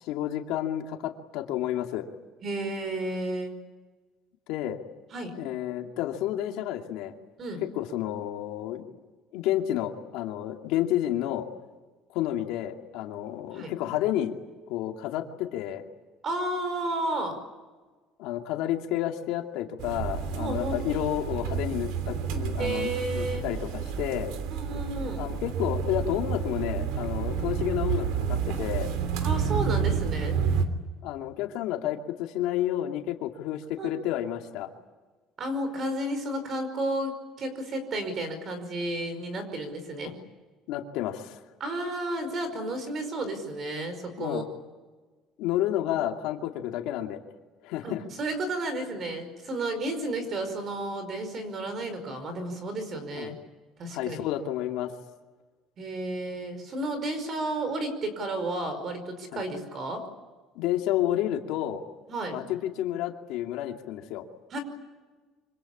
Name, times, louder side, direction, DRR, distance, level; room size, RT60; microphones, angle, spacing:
voice 1, 0.0-2.1 4.5-4.8 5.4-7.1 7.6-9.0 9.3-11.5 12.1-14.3 14.7-15.8 18.2-24.3 25.2-28.9 31.0-34.7 40.7-41.4 44.2-44.4 45.4-47.2 47.6-48.0 53.1-53.4 53.9-54.9 59.3-59.4 60.6-61.8 62.3-64.2, left 12 dB, 70° left, 3 dB, 2.5 m, -30 dB
voice 2, 2.4-3.5 5.1-5.3 7.4-7.6 13.5-13.7 16.2-17.4 20.4-20.8 22.6-23.4 24.5-25.3 29.2-30.4 33.8-33.9 35.4-40.1 41.6-44.4 47.8-53.3 53.8-54.2 55.8-60.0 62.1-62.4 64.5-64.6, right 1 dB, 30° right, 9 dB, 5.2 m, -32 dB
sound 1, 19.8-30.6, right 7 dB, 90° right, 3.1 m, -30 dB
26.5 x 25.5 x 8.6 m, 1.3 s
cardioid pair, 180°, 0 cm